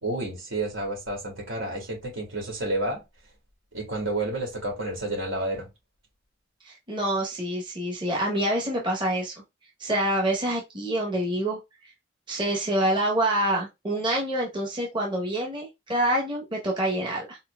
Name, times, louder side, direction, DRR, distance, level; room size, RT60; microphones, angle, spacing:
voice 1, 0.0-3.0 3.7-5.7, right 2 dB, 85° right, 2.6 m, -30 dB
voice 2, 6.6-9.3 9.8-11.6 12.3-17.4, right 1 dB, 25° right, 1.0 m, -26 dB
4.3 x 4.2 x 2.3 m
head